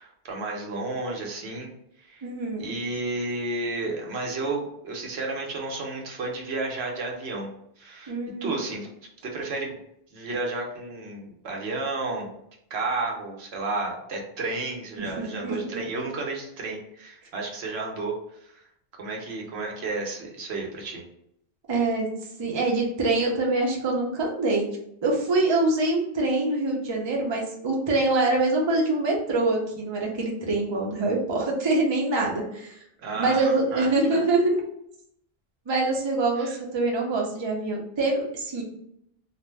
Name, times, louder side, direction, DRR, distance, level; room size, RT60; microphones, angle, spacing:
voice 1, 0.0-1.7 2.0-2.3 2.6-7.5 7.8-8.1 8.4-8.9 9.2-9.8 10.1-12.4 12.7-18.7 19.0-21.0 33.0-34.2 36.4-36.6, right 3 dB, 80° right, 0 dB, 0.9 m, -32 dB
voice 2, 2.2-2.7 8.1-8.6 15.0-15.8 21.7-22.1 22.4-24.7 25.0-32.8 33.2-34.6 35.7-38.6, right 2 dB, 35° right, -1 dB, 0.5 m, -25 dB
2.5 x 2.0 x 3.1 m, 0.74 s
omnidirectional pair, 1.1 m